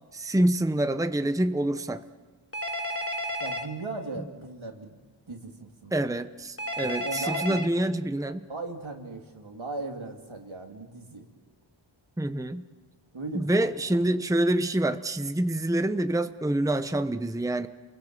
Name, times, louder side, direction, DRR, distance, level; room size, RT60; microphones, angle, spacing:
voice 1, 0.1-2.0 5.9-8.5 12.2-12.6 13.3-17.7, right 1 dB, 5° right, 10 dB, 0.9 m, -26 dB
Telephone, 2.5-3.7 6.6-7.7, equal, 30° left, 1.9 m, -31 dB
voice 2, 3.4-5.0 5.3-6.1 6.8-7.7 8.5-11.2 13.1-14.0, right 3 dB, 75° right, 2 dB, 3.1 m, -38 dB
28.5 x 22.5 x 7.5 m, 1.4 s
wide cardioid pair, 60°, 47 cm